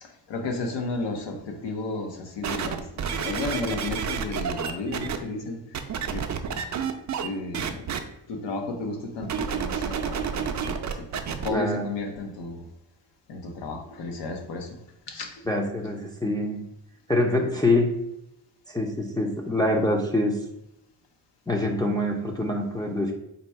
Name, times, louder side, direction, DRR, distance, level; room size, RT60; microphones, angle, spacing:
voice 1, 0.0-5.6 6.1-6.6 7.2-7.9 8.3-12.7 13.3-14.8 15.1-15.4, left 2 dB, 85° left, 2 dB, 0.9 m, -33 dB
sound 1, 2.4-5.2 5.7-7.3 7.5-8.0 9.2-11.5 12.2-12.3, right 7 dB, 45° right, 0.5 m, -29 dB
voice 2, 11.5-11.9 15.5-16.6 17.1-17.9 18.7-20.4 21.5-23.1, left 1 dB, 10° left, -1 dB, 0.5 m, -25 dB
4.0 x 2.2 x 4.5 m, 0.83 s
cardioid pair, 105°, 42 cm